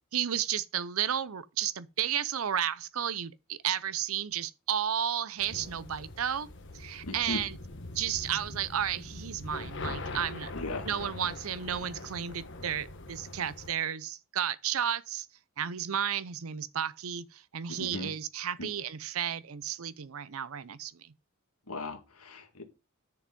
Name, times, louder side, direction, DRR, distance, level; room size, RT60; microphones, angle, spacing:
voice 1, 0.1-6.5 6.7-7.6 7.9-10.5 10.8-15.3 15.6-21.1, right 9 dB, 70° right, 0.6 m, -33 dB
sound 1, 5.4-13.7, left 2 dB, 55° left, 1.3 m, -42 dB
voice 2, 7.0-7.4 10.5-10.9 17.7-18.1 18.6-18.7 21.7-22.6, left 2 dB, 80° left, 1.9 m, -37 dB
7.9 x 6.8 x 5.2 m
head